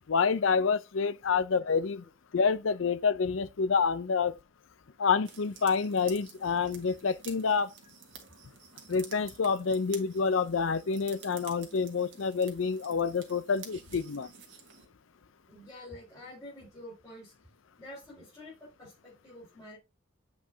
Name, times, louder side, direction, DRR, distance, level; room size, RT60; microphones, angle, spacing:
voice 1, 0.1-2.0 2.3-4.4 5.0-7.7 8.9-14.3, left 5 dB, 85° left, 0.5 m, -28 dB
sound 1, 5.2-14.9, right 7 dB, 75° right, 1.7 m, -51 dB
voice 2, 15.5-17.3 17.8-19.8, left 1 dB, 15° left, 4.5 m, -48 dB
8.1 x 5.1 x 2.7 m
head